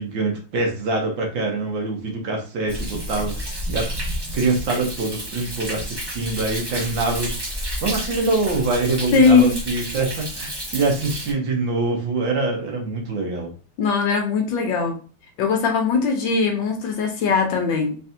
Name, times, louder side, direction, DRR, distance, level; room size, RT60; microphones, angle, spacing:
voice 1, 0.0-3.9 4.3-13.5, right 3 dB, 65° right, 1.7 m, -24 dB
Thunder, 2.7-11.3, equal, 25° right, 0.5 m, -31 dB
voice 2, 9.1-9.6 13.8-15.0 15.4-18.0, left 5 dB, 70° left, 1.4 m, -19 dB
4.1 x 3.3 x 2.8 m
omnidirectional pair, 2.3 m